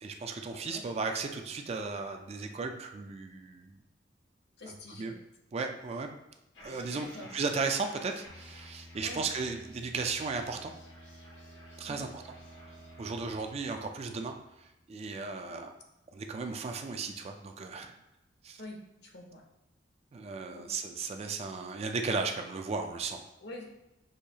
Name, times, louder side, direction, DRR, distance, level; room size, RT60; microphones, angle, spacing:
voice 1, 0.0-3.8 4.7-5.1 5.5-6.1 6.6-10.7 11.8-12.1 13.0-15.7 16.1-17.9 18.4-18.6 20.1-23.2, right 4 dB, 35° right, 5 dB, 0.3 m, -35 dB
voice 2, 0.5-0.8 4.6-5.1 7.0-7.3 9.0-9.3 11.9-12.1 13.3-13.4 15.5-15.6 18.6-19.4 20.5-20.7 23.4-23.7, left 1 dB, 60° left, 2 dB, 0.7 m, -46 dB
sound 1, 6.5-13.5, left 1 dB, 85° left, 1.0 m, -55 dB
sound 2, 8.3-14.9, equal, 85° right, 1.1 m, -53 dB
6.3 x 2.6 x 2.8 m, 0.92 s
head